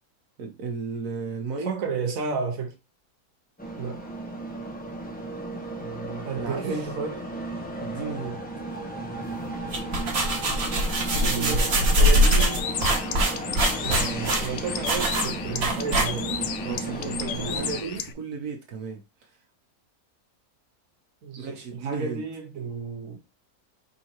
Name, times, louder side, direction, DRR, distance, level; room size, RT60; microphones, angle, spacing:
voice 1, 0.4-1.8 5.8-6.8 7.8-8.4 11.1-11.6 16.6-19.4 21.4-22.2, right 5 dB, 80° right, 1.4 m, -35 dB
voice 2, 1.6-2.7 3.8-4.1 6.2-7.3 11.2-12.6 13.8-16.3 17.3-18.1 21.2-23.2, right 5 dB, 65° right, 1.5 m, -32 dB
sound 1, 3.6-17.8, right 1 dB, 10° left, 0.7 m, -34 dB
sound 2, 9.5-16.5, equal, 45° right, 1.2 m, -23 dB
Bird, 12.0-18.1, left 8 dB, 65° left, 0.8 m, -34 dB
4.8 x 3.7 x 2.9 m
omnidirectional pair, 1.6 m